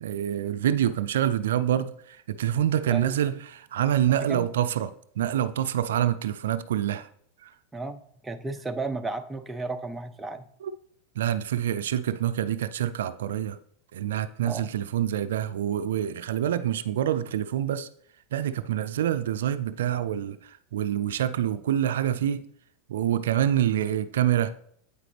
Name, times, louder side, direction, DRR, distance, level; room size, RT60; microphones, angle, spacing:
voice 1, 0.0-4.9 5.2-7.1 7.4-7.5 10.6-10.7 11.2-13.6 13.9-17.9 18.3-22.4 22.9-24.6, right 11 dB, 80° right, 0.3 m, -26 dB
voice 2, 2.9-3.2 4.2-4.5 7.7-8.0 8.2-10.5 14.4-14.7, right 3 dB, 10° right, 0.6 m, -33 dB
8.4 x 4.9 x 3.3 m
hypercardioid pair, 100°, 0 cm